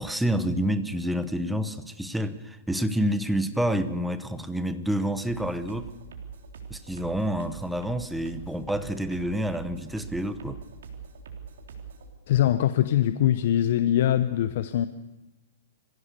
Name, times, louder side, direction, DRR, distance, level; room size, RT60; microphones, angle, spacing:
voice 1, 0.0-5.9 6.7-10.6, equal, ahead, 11 dB, 0.9 m, -28 dB
sound 1, 5.3-12.1, right 6 dB, 85° right, 3.5 m, -42 dB
voice 2, 12.3-14.9, left 11 dB, 55° left, 12 dB, 0.8 m, -22 dB
24.5 x 16.0 x 6.8 m, 1.0 s
hypercardioid pair, 155°, 0 cm